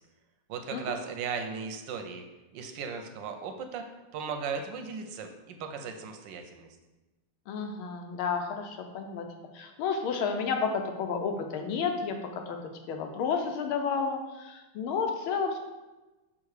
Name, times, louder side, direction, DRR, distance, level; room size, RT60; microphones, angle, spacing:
voice 1, 0.5-2.2 2.5-3.8 4.1-6.7, right 6 dB, 75° right, 5 dB, 1.1 m, -37 dB
voice 2, 7.5-9.3 9.5-12.6 12.9-15.6, left 5 dB, 80° left, 5 dB, 1.5 m, -31 dB
5.6 x 3.7 x 4.8 m, 1.1 s
omnidirectional pair, 2.3 m